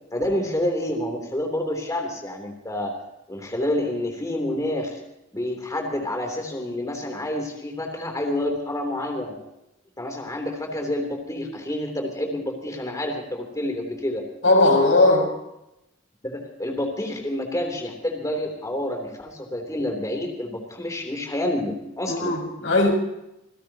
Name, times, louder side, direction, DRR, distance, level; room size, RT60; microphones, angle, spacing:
voice 1, 0.1-2.9 3.3-5.0 5.3-9.3 10.0-14.2 16.2-22.4, left 1 dB, 20° left, 2 dB, 3.3 m, -28 dB
voice 2, 14.4-15.3 22.1-22.9, left 2 dB, 85° left, 1 dB, 6.0 m, -18 dB
28.0 x 16.5 x 2.9 m, 0.88 s
head